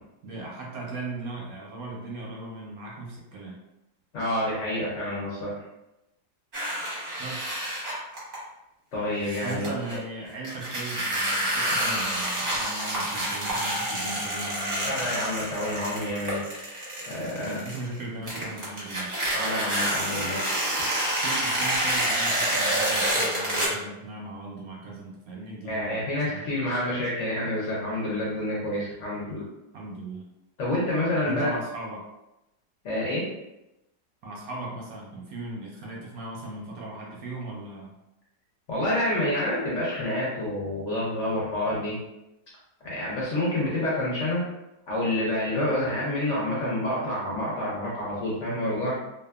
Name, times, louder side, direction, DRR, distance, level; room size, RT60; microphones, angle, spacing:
voice 1, 0.2-3.6 7.2-7.5 9.4-15.1 17.4-19.1 21.2-26.5 29.7-30.2 31.2-32.0 34.2-37.9, right 2 dB, 70° right, -2 dB, 0.9 m, -38 dB
voice 2, 4.1-5.6 8.9-9.7 14.8-16.4 17.0-17.6 19.3-20.4 25.6-29.5 30.6-31.6 32.8-33.3 38.7-42.0 42.8-44.4 44.9-49.0, left 1 dB, 60° left, -6 dB, 0.8 m, -28 dB
sound 1, 6.5-8.3 9.2-10.0 10.4-18.0 18.3-23.7, right 1 dB, 35° right, 0.7 m, -28 dB
2.7 x 2.3 x 2.3 m, 0.91 s
omnidirectional pair, 1.8 m